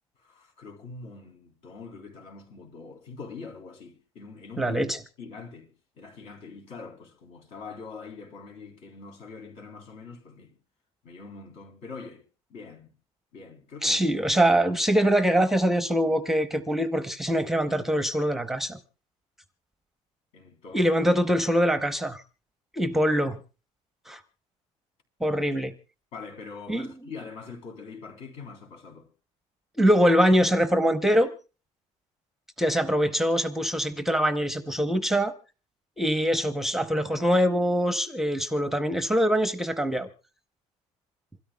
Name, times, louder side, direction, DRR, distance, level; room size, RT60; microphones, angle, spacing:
voice 1, 0.2-4.8 5.2-5.7 6.0-10.6 11.0-12.2 12.5-12.9 13.3-14.1 20.3-20.9 26.1-29.1, left 4 dB, 70° left, 3.7 m, -43 dB
voice 2, 4.6-5.0 13.8-18.8 20.7-22.2 22.7-23.4 24.1-24.2 25.2-25.7 26.7-26.9 29.8-31.3 32.6-35.3 36.0-40.1, equal, 5° right, 0.7 m, -23 dB
27.0 x 13.0 x 2.2 m
cardioid pair, 165°, 12 cm